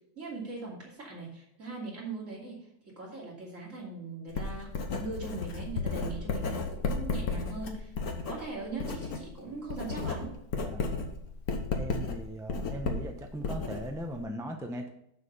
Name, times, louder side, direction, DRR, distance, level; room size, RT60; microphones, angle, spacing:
voice 1, 0.2-2.6 3.0-4.7 5.0-7.9 8.2-10.3, right 3 dB, 55° right, -4 dB, 3.1 m, -40 dB
Writing, 4.3-9.3 9.6-14.2, left 4 dB, 80° left, 1.6 m, -33 dB
voice 2, 10.6-10.9 11.7-14.9, right 1 dB, 5° right, 3 dB, 0.7 m, -39 dB
7.0 x 6.7 x 5.4 m, 0.76 s
omnidirectional pair, 1.5 m